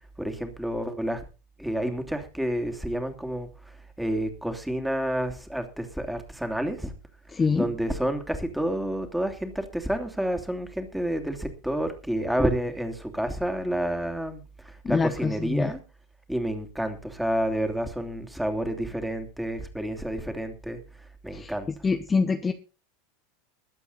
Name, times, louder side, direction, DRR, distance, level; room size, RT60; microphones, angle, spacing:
voice 1, 0.2-1.2 1.6-6.9 7.5-15.8 16.3-20.8 21.2-21.7, right 1 dB, 5° right, 6 dB, 2.9 m, -29 dB
voice 2, 7.3-7.7 14.8-15.7 21.3-21.5 21.8-22.5, left 4 dB, 20° left, 6 dB, 1.1 m, -25 dB
21.5 x 8.3 x 4.1 m, 0.33 s
figure-of-eight pair, 85°, 0 cm